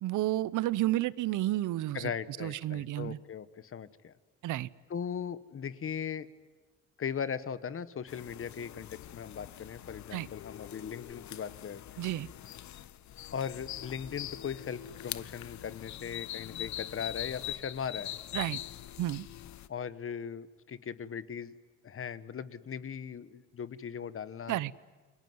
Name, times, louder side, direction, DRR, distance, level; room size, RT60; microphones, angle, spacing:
voice 1, 0.0-2.1 2.4-3.2 4.4-4.7 10.1-10.3 12.0-12.3 18.3-18.6 19.0-19.3 24.5-24.8, right 15 dB, 80° right, 20 dB, 0.8 m, -31 dB
voice 2, 1.9-4.1 4.9-6.3 7.0-12.0 13.3-18.1 19.7-21.5 21.8-24.6, left 7 dB, 45° left, 15 dB, 1.3 m, -39 dB
sound 1, 8.1-19.7, left 12 dB, 70° left, 0.9 m, -43 dB
29.5 x 21.5 x 9.5 m, 1.4 s
cardioid pair, 90°, 30 cm